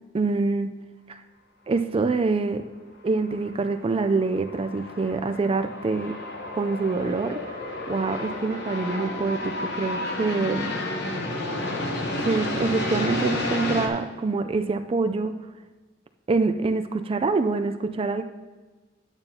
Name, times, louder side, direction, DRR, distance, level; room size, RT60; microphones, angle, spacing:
voice 1, 0.1-0.8 1.1-1.2 1.7-2.7 3.0-6.2 6.6-10.8 12.2-15.4 16.3-18.2, right 3 dB, 30° right, 8 dB, 0.4 m, -25 dB
sound 1, 3.2-13.9, left 2 dB, 60° left, 1.0 m, -31 dB
10.5 x 8.8 x 2.8 m, 1.3 s
head